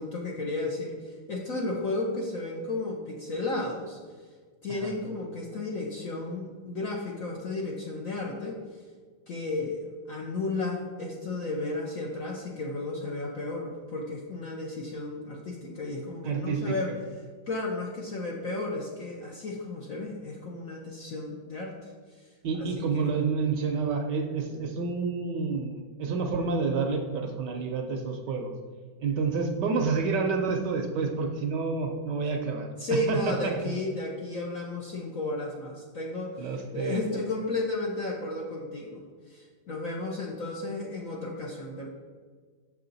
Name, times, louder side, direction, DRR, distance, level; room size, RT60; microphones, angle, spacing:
voice 1, 0.0-4.0 4.6-8.6 9.3-16.9 17.5-21.9 22.2-22.3 22.6-22.7 22.9-23.1 32.8-41.9, left 2 dB, 60° left, -1 dB, 0.9 m, -33 dB
voice 2, 16.2-17.0 22.4-28.5 29.0-33.8 36.4-37.0, right 4 dB, 70° right, 4 dB, 1.2 m, -29 dB
6.6 x 5.6 x 3.9 m, 1.6 s
omnidirectional pair, 2.2 m